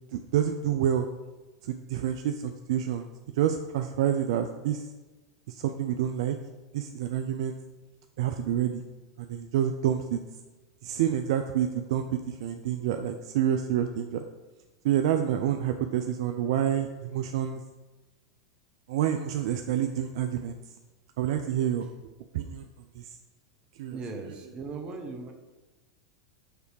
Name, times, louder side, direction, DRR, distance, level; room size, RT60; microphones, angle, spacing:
voice 1, 0.1-1.1 1.6-3.1 3.4-4.9 5.5-6.4 6.7-7.6 8.2-8.8 9.2-10.2 10.8-14.2 14.8-17.6 18.9-20.5 21.2-21.9 22.3-22.7 23.0-23.2 23.8-24.0, right 10 dB, 65° right, 7 dB, 0.4 m, -28 dB
voice 2, 23.9-25.3, right 3 dB, 35° right, 4 dB, 1.1 m, -38 dB
6.7 x 3.3 x 4.7 m, 1.2 s
hypercardioid pair, 95°, 3 cm